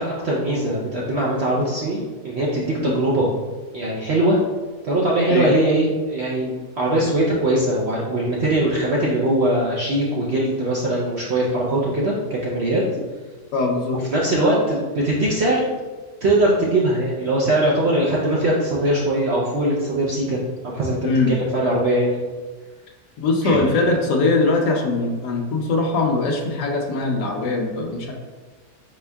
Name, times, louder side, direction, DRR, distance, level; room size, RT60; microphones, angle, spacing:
voice 1, 0.0-3.3 3.7-4.4 4.8-12.8 14.1-15.6 16.2-22.2 23.4-23.9, right 1 dB, 65° right, -5 dB, 0.6 m, -21 dB
voice 2, 13.5-14.0 21.0-21.3 23.2-28.1, left 3 dB, 75° left, 1 dB, 1.2 m, -21 dB
4.4 x 4.4 x 2.2 m, 1.4 s
omnidirectional pair, 1.8 m